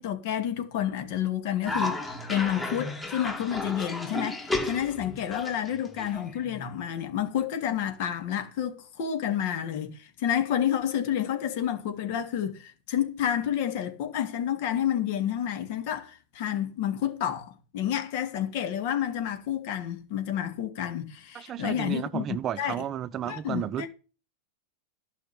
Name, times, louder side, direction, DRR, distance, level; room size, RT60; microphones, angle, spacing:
voice 1, 0.0-22.7 23.2-23.9, left 10 dB, 60° left, 2.4 m, -30 dB
Cough, 1.7-6.7, left 2 dB, 10° left, 2.3 m, -33 dB
voice 2, 21.3-23.9, right 10 dB, 30° right, 0.7 m, -33 dB
11.5 x 5.8 x 8.9 m
hypercardioid pair, 115°, 0 cm